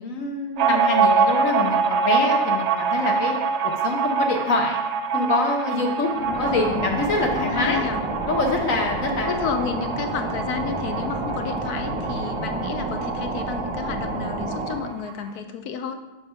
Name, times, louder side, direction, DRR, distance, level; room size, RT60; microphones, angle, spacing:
voice 1, 0.0-3.3 3.8-4.8 5.1-7.9 8.3-9.3, left 3 dB, 65° left, 1 dB, 1.2 m, -25 dB
sound 1, 0.6-13.7 14.0-14.1 14.4-15.1, right 5 dB, 65° right, 0.7 m, -25 dB
voice 2, 6.1-7.0 7.4-8.0 9.2-16.1, left 6 dB, 85° left, 7 dB, 1.2 m, -31 dB
sound 2, 6.1-15.0, right 2 dB, 30° right, 0.6 m, -29 dB
6.5 x 4.6 x 5.4 m, 1.1 s
omnidirectional pair, 1.6 m